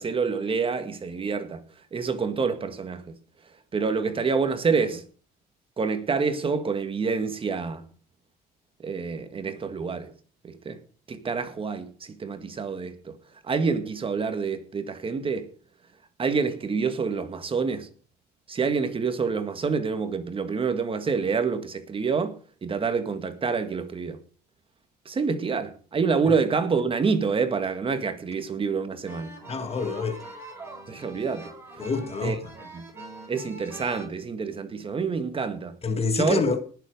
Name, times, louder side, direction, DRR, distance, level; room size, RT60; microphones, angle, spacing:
voice 1, 0.0-1.6 1.9-3.1 3.7-5.0 5.8-7.8 8.8-10.1 10.4-10.8 11.1-13.1 13.4-15.5 16.2-17.9 18.5-24.2 25.1-29.3 30.9-31.5 32.2-32.4 32.7-32.8 33.3-35.8 36.1-36.4, right 5 dB, 30° right, 1.9 m, -27 dB
sound 1, 29.1-34.1, right 2 dB, 15° right, 7.1 m, -43 dB
voice 2, 29.5-30.2 31.8-32.4 35.8-36.6, left 4 dB, 35° left, 2.0 m, -26 dB
19.0 x 7.3 x 5.1 m
cardioid pair, 110°, 17 cm